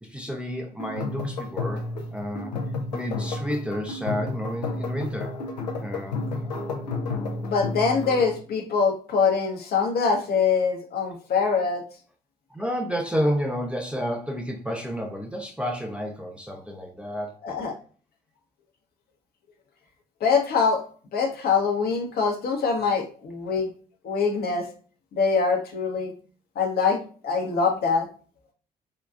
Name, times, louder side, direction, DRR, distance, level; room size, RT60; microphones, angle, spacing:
voice 1, 0.0-2.6 2.9-5.4 5.8-6.2 12.5-17.4, equal, 5° right, 2 dB, 0.6 m, -30 dB
sound 1, 0.8-8.4, left 3 dB, 85° left, 0.4 m, -31 dB
voice 2, 7.4-11.8 17.4-17.7 20.2-20.8 21.1-23.7 24.0-24.7 25.1-26.1 26.6-28.1, left 5 dB, 50° left, 2 dB, 0.7 m, -24 dB
3.7 x 2.3 x 2.4 m, 0.41 s
figure-of-eight pair, 45°, 21 cm